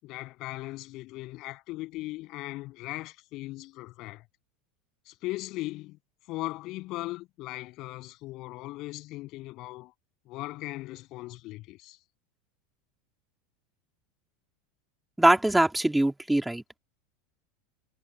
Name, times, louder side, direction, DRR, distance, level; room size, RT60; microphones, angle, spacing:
voice 1, 0.0-4.3 5.1-6.0 6.3-9.9 10.3-12.0, left 19 dB, 45° left, 7.3 m, -38 dB
voice 2, 15.2-16.6, right 1 dB, 5° right, 2.7 m, -22 dB
supercardioid pair, 150°, 0 cm